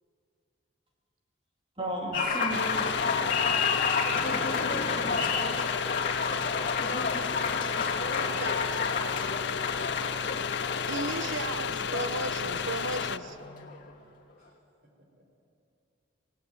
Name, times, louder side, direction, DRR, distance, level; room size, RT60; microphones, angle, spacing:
voice 1, 1.8-3.6 4.2-5.2, right 1 dB, 25° right, -2 dB, 3.6 m, -37 dB
Applause, 2.1-13.9, left 5 dB, 45° left, 2.6 m, -31 dB
sound 1, 2.5-13.2, left 7 dB, 60° left, 0.6 m, -32 dB
voice 2, 8.0-8.8 9.5-10.2 14.4-14.6, right 1 dB, 50° right, 3 dB, 4.5 m, -43 dB
voice 3, 10.9-13.4, right 2 dB, 75° right, 11 dB, 1.2 m, -35 dB
27.5 x 18.0 x 9.2 m, 2.6 s
head